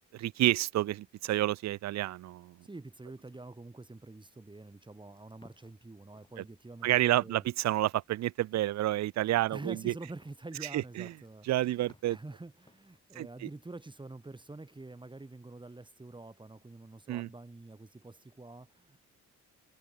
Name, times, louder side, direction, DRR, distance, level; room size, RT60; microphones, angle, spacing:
voice 1, 0.1-2.6 6.8-9.9 10.7-11.1 11.5-12.2 13.2-13.3 17.1-17.3, right 14 dB, 65° right, 0.6 m, -29 dB
voice 2, 2.6-7.4 9.5-19.1, right 2 dB, 15° right, 2.6 m, -47 dB
sound 1, 5.1-13.0, left 2 dB, 15° left, 5.9 m, -65 dB
cardioid pair, 90°, 30 cm